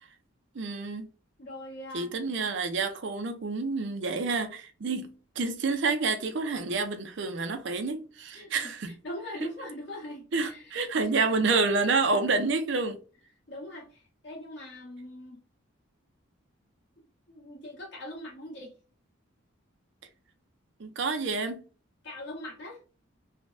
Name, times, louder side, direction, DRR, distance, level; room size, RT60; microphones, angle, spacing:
voice 1, 0.6-1.1 1.9-9.0 10.3-13.0 20.8-21.6, right 3 dB, 60° right, 0.5 m, -28 dB
voice 2, 1.4-2.1 8.3-11.1 13.5-15.4 17.3-18.7 22.0-22.8, left 1 dB, 55° left, 1.4 m, -42 dB
3.2 x 2.2 x 2.5 m
head